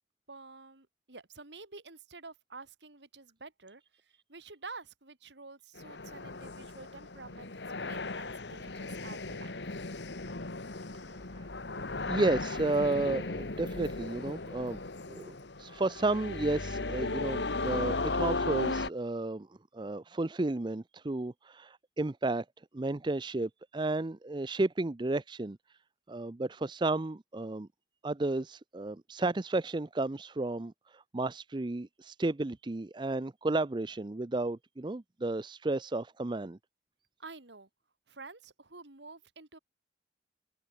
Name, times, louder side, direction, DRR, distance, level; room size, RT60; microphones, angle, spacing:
voice 1, 0.3-7.5 7.8-9.7 37.2-37.7 38.1-39.6, right 3 dB, 85° right, 2.7 m, -49 dB
sound 1, 5.8-18.9, left 3 dB, 85° left, 1.8 m, -36 dB
voice 2, 11.1-11.5 12.1-14.8 15.1-19.5 19.7-22.4 22.7-25.6 26.1-27.7 28.0-36.6, right 2 dB, 25° right, 0.5 m, -32 dB
head